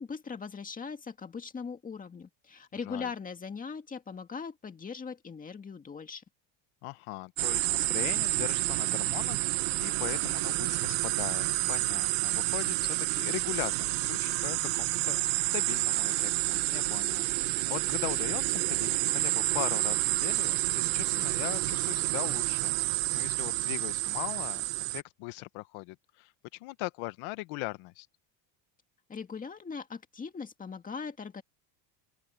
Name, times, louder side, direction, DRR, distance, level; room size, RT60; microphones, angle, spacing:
voice 1, 0.0-6.2 29.1-31.4, left 5 dB, 15° left, 2.0 m, -40 dB
voice 2, 6.8-24.6 24.9-28.1, left 21 dB, 75° left, 1.1 m, -40 dB
sound 1, 7.4-25.0, right 22 dB, 75° right, 1.1 m, -29 dB
open air
cardioid pair, 160°, 48 cm